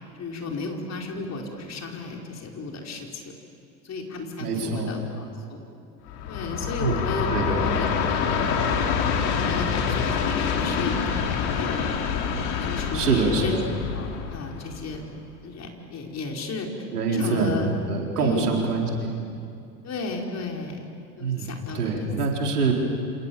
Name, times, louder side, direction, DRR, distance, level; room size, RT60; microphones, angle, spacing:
voice 1, 0.1-3.3 3.8-5.7 6.3-8.8 9.3-11.9 12.5-13.6 13.9-15.0 15.4-16.7 17.1-17.7 18.2-18.6 19.8-20.8 21.2-22.1, left 3 dB, 35° left, 1 dB, 4.8 m, -34 dB
voice 2, 4.4-4.9 6.8-7.6 12.9-13.7 16.9-19.1 21.2-21.5 21.7-22.7, right 4 dB, 85° right, 0 dB, 4.3 m, -25 dB
Train, 6.1-15.3, left 6 dB, 60° left, 3.7 m, -26 dB
29.5 x 27.0 x 7.3 m, 2.6 s
hypercardioid pair, 80°, 45 cm